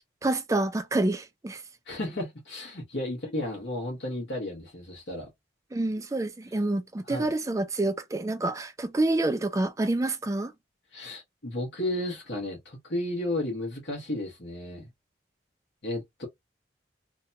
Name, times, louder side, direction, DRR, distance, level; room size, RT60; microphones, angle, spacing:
voice 1, 0.2-1.6 5.7-10.5, right 2 dB, 15° right, 0.4 m, -27 dB
voice 2, 1.9-5.3 7.1-7.3 10.9-14.9 15.8-16.3, left 1 dB, 70° left, 1.1 m, -33 dB
2.8 x 2.2 x 2.6 m
head